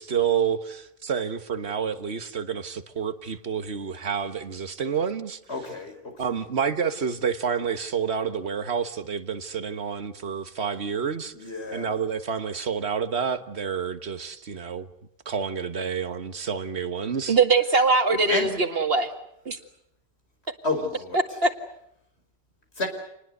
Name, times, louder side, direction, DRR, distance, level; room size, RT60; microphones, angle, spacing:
voice 1, 0.0-5.7 6.2-11.3 11.7-14.9 15.3-17.4, right 7 dB, 90° right, 1.6 m, -29 dB
voice 2, 5.5-5.9 11.4-11.9 18.3-18.5 20.6-21.2 22.8-22.9, left 2 dB, 85° left, 5.4 m, -29 dB
voice 3, 17.3-19.1 19.5-19.6 21.1-21.5, right 3 dB, 65° right, 2.3 m, -21 dB
28.0 x 20.0 x 8.1 m
omnidirectional pair, 1.1 m